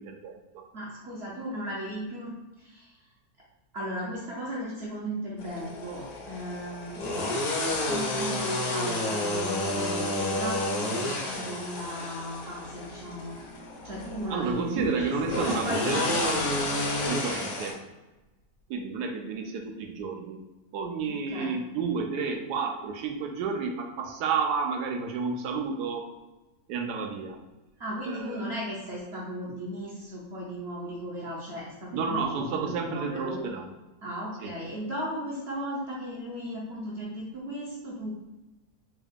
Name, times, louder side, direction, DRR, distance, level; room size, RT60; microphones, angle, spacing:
voice 1, 0.0-0.6 14.3-16.4 17.1-17.8 18.7-20.4 20.7-26.1 26.7-27.4 28.0-28.5 31.9-33.7 34.4-34.5, right 5 dB, 90° right, 3 dB, 1.1 m, -31 dB
voice 2, 0.7-2.3 2.6-2.9 3.7-7.0 7.9-13.4 13.8-16.2 21.1-21.6 27.8-33.5 34.0-38.1, equal, 55° right, -5 dB, 0.8 m, -36 dB
sound 1, 5.4-17.7, left 1 dB, 65° left, 1.1 m, -30 dB
3.6 x 2.3 x 3.4 m, 1.1 s
omnidirectional pair, 1.6 m